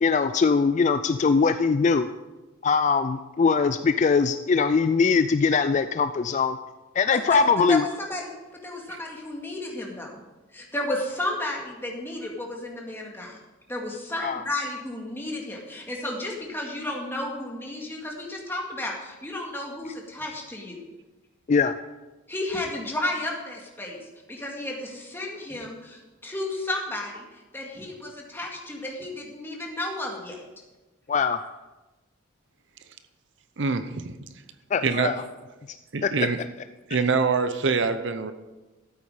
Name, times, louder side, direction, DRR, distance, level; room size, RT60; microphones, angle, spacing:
voice 1, 0.0-2.1 2.6-6.6 7.0-7.9 14.2-14.4 21.5-21.7 31.1-31.4 34.7-35.1 36.0-36.3, left 5 dB, 35° left, 11 dB, 0.3 m, -21 dB
voice 2, 7.7-8.3 8.6-10.1 10.5-13.4 13.7-20.8 22.3-24.0 24.3-30.4, left 1 dB, 10° left, -1 dB, 2.1 m, -32 dB
voice 3, 33.6-34.1 34.8-35.1 35.9-36.4 36.9-38.3, right 4 dB, 60° right, 11 dB, 0.7 m, -24 dB
13.0 x 8.7 x 5.0 m, 1.1 s
head